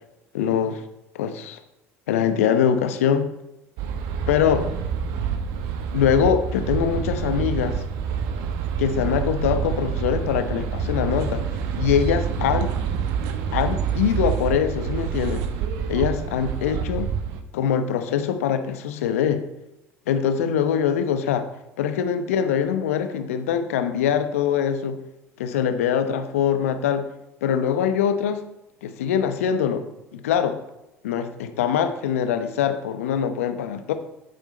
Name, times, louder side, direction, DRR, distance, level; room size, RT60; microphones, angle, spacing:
voice 1, 0.3-0.8 1.1-1.6 2.1-3.3 4.3-4.7 5.9-7.8 8.8-11.4 11.8-12.7 13.5-15.4 15.9-17.1 17.5-19.4 20.1-21.5 21.8-25.0 25.4-27.0 27.4-28.4 28.8-29.8 30.1-30.6 31.0-33.9, left 8 dB, 75° left, 10 dB, 0.9 m, -23 dB
sound 1, 3.8-17.4, right 7 dB, 65° right, 1.1 m, -27 dB
9.0 x 8.0 x 4.4 m, 0.92 s
hypercardioid pair, 65°, 8 cm